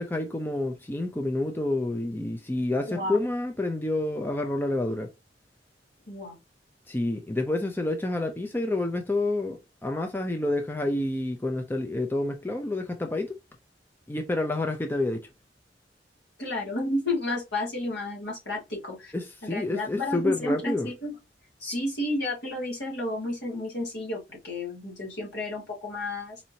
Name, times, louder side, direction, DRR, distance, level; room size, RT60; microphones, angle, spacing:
voice 1, 0.0-5.1 6.9-13.4 14.1-15.3 19.1-20.9, left 2 dB, 10° left, 0.4 m, -28 dB
voice 2, 2.8-3.2 6.1-6.4 16.4-19.1 19.4-21.1 21.6-26.4, left 1 dB, 65° left, 1.7 m, -31 dB
4.2 x 2.8 x 2.7 m
head